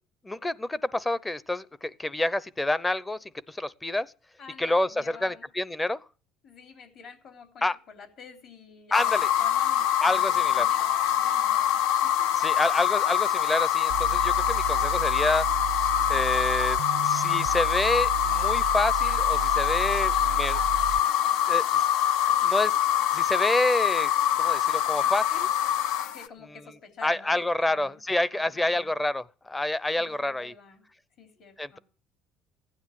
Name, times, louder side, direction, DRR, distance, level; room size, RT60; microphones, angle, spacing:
voice 1, 0.2-4.1 4.6-6.0 7.6-7.8 8.9-9.3 10.0-10.7 12.4-15.5 16.1-16.8 17.0-20.6 21.5-21.8 22.4-22.7 23.1-25.5 27.0-30.5 31.6-31.8, left 2 dB, 10° left, 0.6 m, -28 dB
voice 2, 4.4-5.4 6.4-12.3 19.8-20.2 26.1-28.0 28.3-28.9 30.0-30.8 31.2-31.8, left 6 dB, 55° left, 3.3 m, -49 dB
sound 1, 8.9-26.3, left 10 dB, 80° left, 0.8 m, -24 dB
sound 2, 13.9-21.0, right 20 dB, 80° right, 0.6 m, -34 dB
16.0 x 9.5 x 7.6 m
cardioid pair, 120°, 0 cm